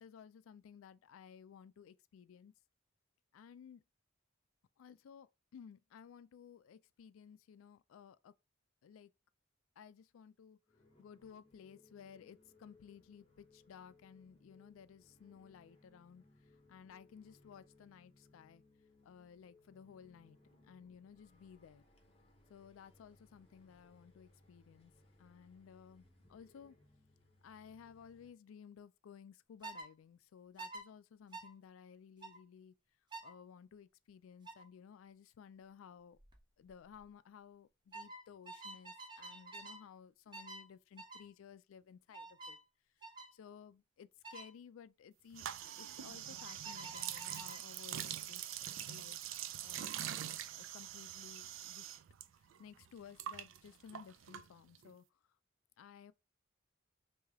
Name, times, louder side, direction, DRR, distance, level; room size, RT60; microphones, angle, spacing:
voice 1, 0.0-2.5 3.3-3.8 4.8-8.3 8.8-9.1 9.8-10.6 11.0-18.6 19.0-21.8 22.5-24.9 25.2-26.8 27.4-32.7 33.2-36.2 36.6-42.6 43.3-45.5 45.8-48.4 48.9-49.2 49.6-49.9 50.5-52.0 52.6-55.2 55.8-56.1, left 7 dB, 90° left, 0.3 m, -57 dB
sound 1, 10.7-28.3, left 2 dB, 30° left, 0.8 m, -67 dB
sound 2, 29.6-29.9 30.6-30.8 31.3-31.5 32.2-32.4 33.1-33.3 34.4-34.7 36.1-36.4 36.6-37.0 37.9-39.8 40.3-40.7 41.0-41.3 42.1-42.6 43.0-43.3 44.2-44.5 46.4-47.6, right 2 dB, 20° right, 0.6 m, -49 dB
sound 3, 45.3-52.3 52.5-54.9, right 11 dB, 80° right, 0.4 m, -44 dB
3.3 x 2.7 x 3.5 m
head